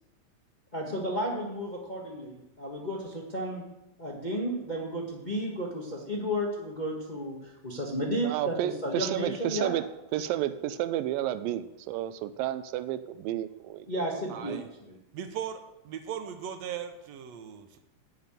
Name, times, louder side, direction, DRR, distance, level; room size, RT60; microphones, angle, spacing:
voice 1, 0.7-3.6 4.0-9.7 13.9-15.0, equal, 75° left, -1 dB, 0.4 m, -33 dB
voice 2, 8.2-9.8 10.1-14.0 14.5-14.6, right 13 dB, 85° right, 12 dB, 2.4 m, -31 dB
voice 3, 14.3-14.7 15.1-17.8, right 8 dB, 65° right, 7 dB, 2.0 m, -38 dB
13.0 x 5.8 x 9.1 m, 0.94 s
omnidirectional pair, 4.0 m